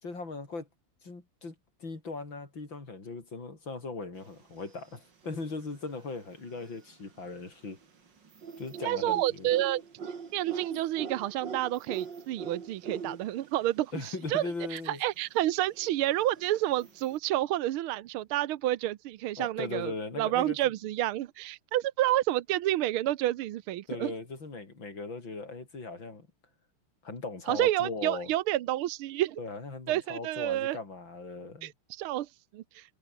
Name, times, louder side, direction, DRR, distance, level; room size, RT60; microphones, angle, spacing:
voice 1, 0.0-0.7 1.0-1.6 1.8-7.8 8.6-9.5 13.9-15.0 19.4-20.6 23.9-26.3 27.0-28.3 29.4-31.7, left 3 dB, 60° left, 5.6 m, -39 dB
sound 1, 4.4-4.9 5.2-7.3 7.6-13.7 13.9-14.0 14.2-14.3 14.9-17.2, right 5 dB, 55° right, 3.1 m, -42 dB
voice 2, 8.8-24.1 27.5-29.4 29.9-30.8 31.6-33.0, right 14 dB, 80° right, 1.7 m, -30 dB
omnidirectional pair, 2.4 m